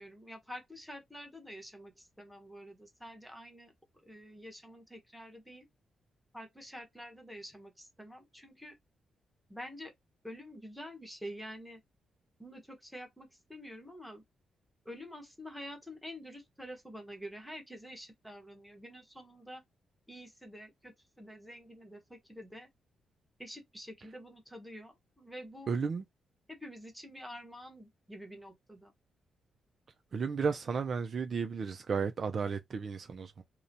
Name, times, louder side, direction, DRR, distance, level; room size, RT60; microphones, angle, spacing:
voice 1, 0.0-3.7 4.1-5.7 6.3-8.8 9.5-9.9 10.2-11.8 12.4-14.2 14.8-19.6 20.1-22.7 23.4-25.7 26.5-28.9, equal, ahead, 0.9 m, -48 dB
voice 2, 25.7-26.0 30.1-33.4, right 5 dB, 45° right, 0.4 m, -33 dB
2.9 x 2.0 x 2.6 m
cardioid pair, 110°, 0 cm